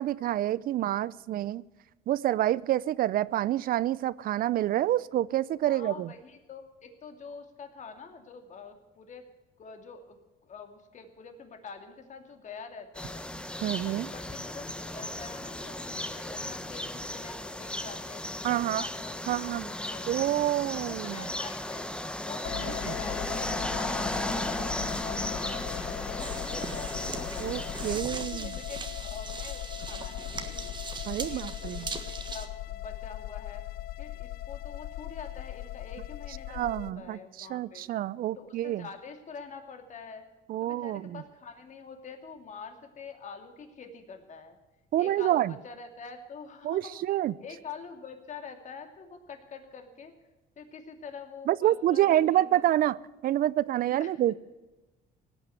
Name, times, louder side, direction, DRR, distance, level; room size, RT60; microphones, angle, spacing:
voice 1, 0.0-1.6 2.1-6.1 13.6-14.1 18.4-18.8 19.3-19.7 20.1-21.2 22.8-22.9 27.4-28.6 31.1-31.9 36.5-38.8 40.5-41.2 44.9-45.5 46.6-47.3 51.5-53.0 53.2-54.4, right 13 dB, 60° right, 0.5 m, -27 dB
voice 2, 5.7-9.3 9.6-13.3 13.6-20.3 20.7-21.9 22.2-27.5 27.8-30.8 31.2-33.6 34.0-37.9 38.3-40.3 40.6-44.6 45.0-50.1 50.6-52.7 54.0-54.2, left 5 dB, 45° left, 2.5 m, -46 dB
sound 1, 12.9-28.0, left 1 dB, 5° left, 1.0 m, -35 dB
sound 2, 22.4-36.9, left 13 dB, 60° left, 0.5 m, -38 dB
sound 3, 26.2-32.5, right 4 dB, 25° right, 1.5 m, -40 dB
17.5 x 9.1 x 7.9 m
cardioid pair, 110°, 17 cm